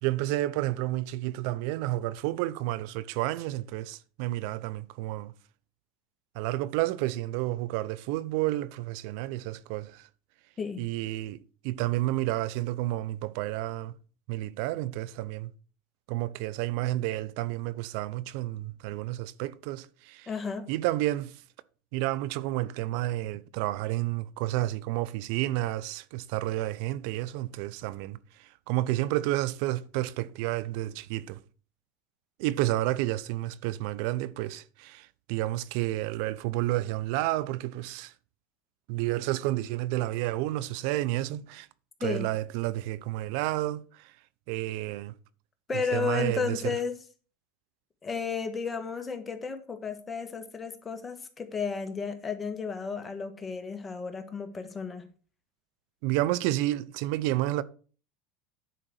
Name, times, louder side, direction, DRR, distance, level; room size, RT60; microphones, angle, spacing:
voice 1, 0.0-5.3 6.3-10.1 10.8-13.9 14.3-15.5 16.1-20.3 20.7-21.3 21.9-31.4 32.4-38.1 38.9-41.7 42.0-44.1 44.5-45.1 45.9-46.7 56.0-57.6, right 16 dB, 65° right, 0.6 m, -30 dB
voice 2, 20.3-20.7 42.0-42.3 45.7-46.9 48.0-55.0, left 5 dB, 20° left, 1.6 m, -33 dB
10.0 x 3.9 x 6.4 m
supercardioid pair, 115°, 0 cm